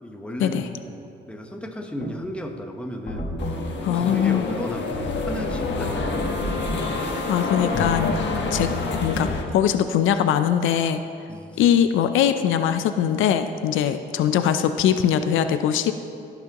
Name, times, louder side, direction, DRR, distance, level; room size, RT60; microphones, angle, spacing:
voice 1, 0.0-3.3 3.9-6.6 11.3-11.6, equal, 5° left, 3 dB, 1.0 m, -34 dB
sound 1, 2.0-2.2 3.1-3.6 4.9-6.8 7.7-9.4, left 1 dB, 40° left, 1.4 m, -31 dB
sound 2, 3.4-9.4, left 4 dB, 65° left, 1.2 m, -28 dB
voice 2, 3.8-4.4 7.3-8.1 8.5-11.0 11.6-15.9, left 9 dB, 80° left, 9 dB, 0.5 m, -21 dB
sound 3, 5.9-9.8, equal, 35° right, 1.6 m, -37 dB
16.5 x 6.0 x 3.0 m, 2.5 s
cardioid pair, 90°, 20 cm